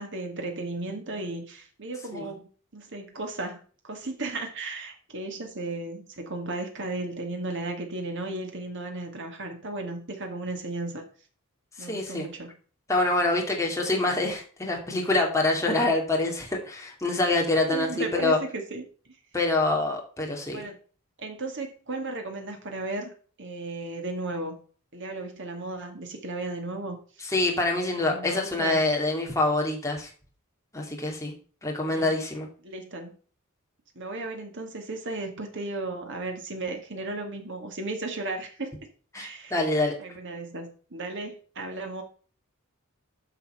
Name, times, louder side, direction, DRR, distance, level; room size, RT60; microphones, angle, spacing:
voice 1, 0.0-11.0 11.8-12.5 17.7-18.9 20.5-20.8 21.2-23.1 23.4-24.6 24.9-27.0 27.9-28.8 31.9-32.1 32.6-33.1 34.0-38.7 39.2-39.7 40.0-42.0, right 2 dB, 55° right, 4 dB, 2.1 m, -35 dB
voice 2, 11.8-12.3 12.9-18.4 19.3-20.6 27.2-30.1 30.7-31.3 31.6-32.5 39.1-39.9, left 2 dB, 15° left, 0 dB, 2.5 m, -26 dB
9.9 x 5.8 x 5.6 m, 0.40 s
head